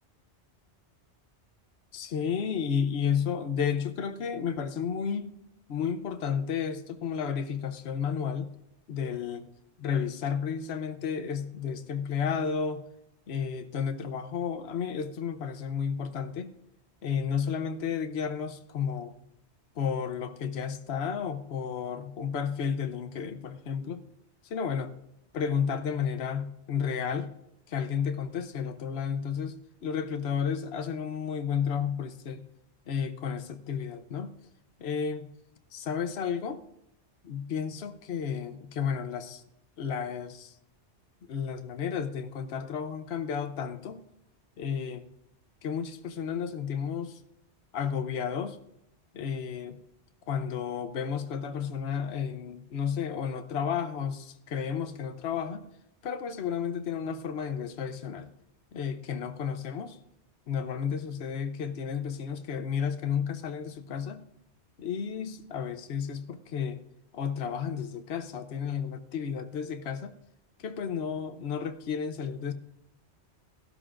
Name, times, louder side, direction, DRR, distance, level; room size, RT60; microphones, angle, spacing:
voice 1, 1.9-5.3 5.7-8.5 8.9-9.5 9.8-12.8 13.3-16.5 17.0-19.1 19.8-24.0 24.4-24.9 25.3-27.3 27.7-29.6 29.8-32.4 32.9-34.3 34.8-35.3 35.7-36.6 37.2-39.4 39.8-40.5 41.3-44.0 44.6-45.0 45.6-47.2 47.7-48.6 49.1-49.8 50.3-55.7 56.0-58.3 58.7-60.0 60.5-64.2 64.8-66.8 67.1-70.1 70.6-72.5, left 7 dB, 70° left, 8 dB, 1.0 m, -32 dB
17.0 x 13.0 x 2.5 m, 0.81 s
omnidirectional pair, 1.2 m